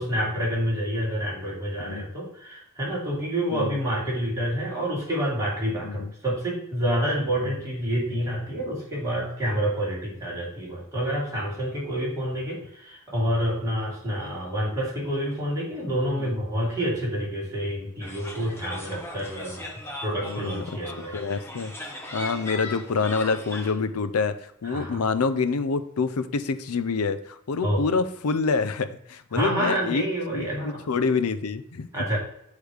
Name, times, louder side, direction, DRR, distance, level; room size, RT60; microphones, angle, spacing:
voice 1, 0.0-21.2 24.6-25.0 27.6-27.8 29.3-30.9 31.9-32.2, equal, 15° right, -6 dB, 2.6 m, -28 dB
sound 1, 18.0-23.7, left 1 dB, 10° left, 1.0 m, -38 dB
voice 2, 20.2-20.8 21.1-21.7 22.1-30.0 30.3-32.0, left 4 dB, 85° left, 11 dB, 0.6 m, -27 dB
8.3 x 3.2 x 4.9 m, 0.74 s
head